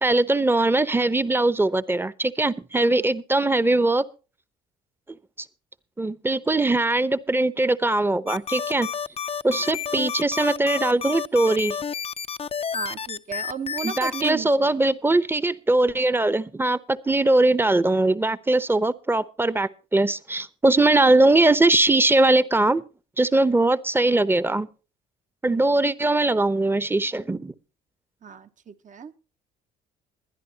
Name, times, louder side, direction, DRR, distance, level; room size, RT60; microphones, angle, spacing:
voice 1, 0.0-4.0 5.4-5.5 6.0-8.9 9.4-11.8 13.8-22.8 23.2-24.7 25.4-27.5, right 2 dB, 10° right, 0.9 m, -21 dB
sound 1, 8.3-14.3, left 7 dB, 30° left, 0.6 m, -30 dB
voice 2, 12.7-14.8 25.5-25.9 28.2-29.1, right 7 dB, 40° right, 1.0 m, -35 dB
21.5 x 10.5 x 2.9 m
supercardioid pair, 65°, 20 cm